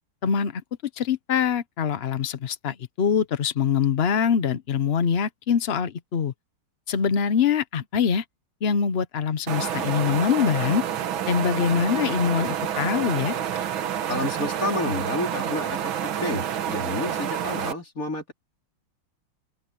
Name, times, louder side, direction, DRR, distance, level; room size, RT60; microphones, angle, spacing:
voice 1, 0.2-0.6 1.0-6.3 6.9-8.2 8.6-10.8 11.3-13.3, left 7 dB, 70° left, 0.6 m, -24 dB
sound 1, 9.5-17.7, right 9 dB, 70° right, 2.0 m, -28 dB
voice 2, 14.1-18.3, left 2 dB, 40° left, 4.6 m, -30 dB
open air
omnidirectional pair, 2.3 m